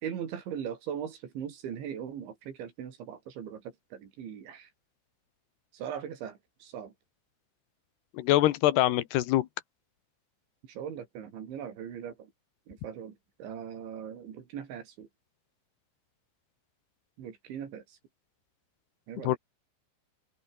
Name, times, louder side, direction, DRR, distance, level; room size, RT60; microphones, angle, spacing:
voice 1, 0.0-3.6 3.9-4.7 5.7-6.9 10.7-12.3 12.7-15.1 17.2-18.0 19.1-19.4, right 8 dB, 70° right, 5.6 m, -40 dB
voice 2, 8.1-9.5 19.2-19.4, left 15 dB, 70° left, 2.9 m, -24 dB
omnidirectional pair, 5.6 m